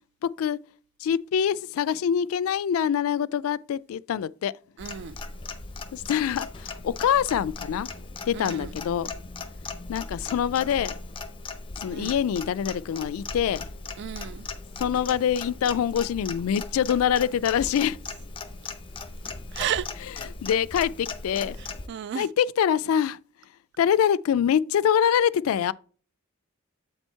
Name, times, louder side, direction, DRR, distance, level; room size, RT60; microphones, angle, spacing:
voice 1, 0.2-0.6 1.0-4.5 5.9-7.9 8.3-9.1 9.9-11.0 11.8-13.7 14.8-18.0 20.0-21.6 22.1-23.2 23.8-25.7, left 8 dB, 85° left, 0.3 m, -25 dB
Clock, 4.8-21.9, left 3 dB, 25° left, 0.6 m, -38 dB
voice 2, 4.8-5.1 8.4-8.6 11.9-12.1 14.0-14.4 19.5-19.8 21.9-22.2, right 9 dB, 55° right, 0.3 m, -32 dB
7.6 x 4.4 x 4.4 m
head